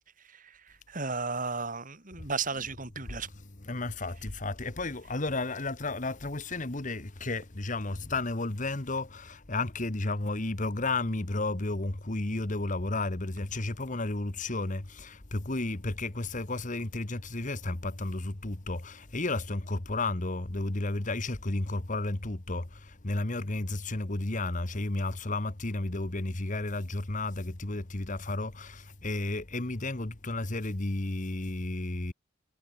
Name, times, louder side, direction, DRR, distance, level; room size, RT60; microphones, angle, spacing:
voice 1, 0.9-3.3, right 4 dB, 40° right, 3.9 m, -34 dB
voice 2, 3.7-9.2 9.5-14.8 15.3-22.6 23.0-28.7 29.0-32.1, left 2 dB, 40° left, 1.5 m, -32 dB
head